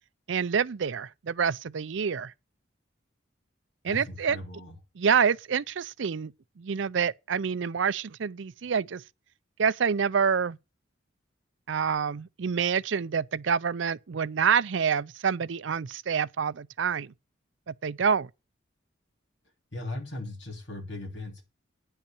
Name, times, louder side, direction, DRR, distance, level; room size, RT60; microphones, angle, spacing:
voice 1, 0.3-2.3 3.8-4.4 5.0-6.3 6.6-9.0 9.6-10.6 11.7-17.1 17.7-18.3, right 6 dB, 75° right, 0.5 m, -27 dB
voice 2, 3.8-4.8 19.7-21.4, left 2 dB, 60° left, 3.3 m, -38 dB
10.5 x 5.7 x 6.9 m
head